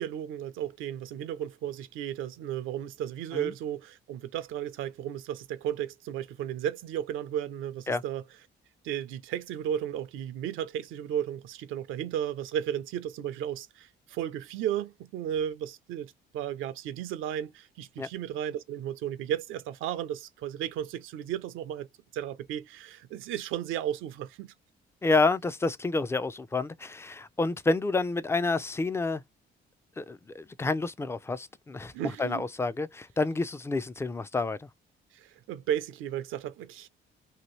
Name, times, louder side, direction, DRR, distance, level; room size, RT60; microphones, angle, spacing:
voice 1, 0.0-8.2 8.8-21.9 22.1-24.5 31.9-32.4 35.1-36.9, right 10 dB, 90° right, 0.5 m, -34 dB
voice 2, 25.0-29.2 30.0-31.9 32.2-34.7, left 3 dB, 15° left, 0.3 m, -29 dB
2.8 x 2.6 x 3.1 m
cardioid pair, 90°, 20 cm